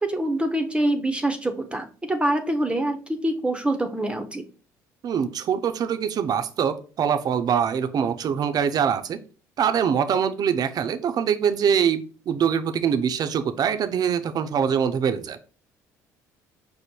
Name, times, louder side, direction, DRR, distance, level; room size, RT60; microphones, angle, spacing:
voice 1, 0.0-4.4, right 1 dB, 15° right, 6 dB, 0.7 m, -25 dB
voice 2, 5.0-9.2 9.6-15.4, right 7 dB, 50° right, 9 dB, 0.6 m, -23 dB
5.2 x 2.1 x 4.4 m, 0.38 s
hypercardioid pair, 60°, 9 cm